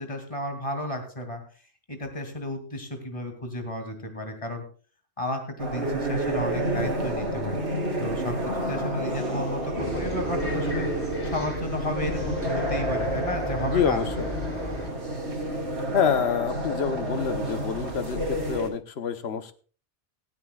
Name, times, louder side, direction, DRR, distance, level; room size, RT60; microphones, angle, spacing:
voice 1, 0.0-1.4 1.9-4.6 5.2-7.6 8.0-10.9 11.3-14.0, left 1 dB, 30° left, 5 dB, 2.5 m, -33 dB
sound 1, 5.6-18.7, right 1 dB, 75° right, 3.0 m, -29 dB
Bus, 9.8-14.9, left 1 dB, 10° left, 3.0 m, -36 dB
voice 2, 13.6-14.3 15.9-19.5, left 7 dB, 65° left, 10 dB, 1.1 m, -27 dB
17.0 x 15.0 x 2.3 m, 0.39 s
omnidirectional pair, 1.2 m